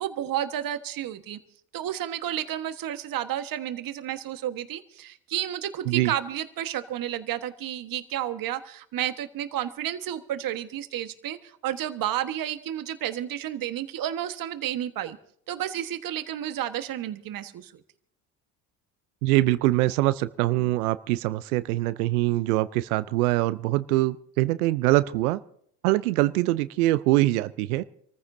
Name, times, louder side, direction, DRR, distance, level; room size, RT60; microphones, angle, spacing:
voice 1, 0.0-1.4 1.7-15.2 15.5-17.8, right 11 dB, 50° right, 10 dB, 1.4 m, -31 dB
voice 2, 19.2-25.4 25.8-27.8, right 17 dB, 80° right, 16 dB, 0.6 m, -23 dB
27.5 x 14.5 x 2.7 m, 0.66 s
hypercardioid pair, 70°, 44 cm